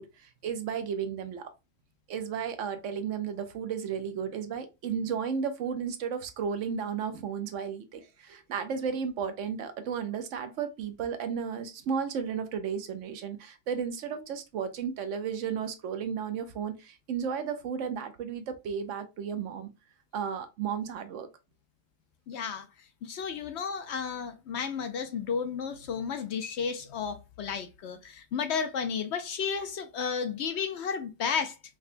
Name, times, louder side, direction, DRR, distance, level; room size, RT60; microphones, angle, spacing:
voice 1, 0.0-1.5 2.1-19.7 20.1-21.3, right 7 dB, 70° right, 0.9 m, -33 dB
voice 2, 22.3-22.7 23.0-31.6, left 6 dB, 65° left, 0.8 m, -33 dB
4.9 x 2.2 x 2.5 m
omnidirectional pair, 1.3 m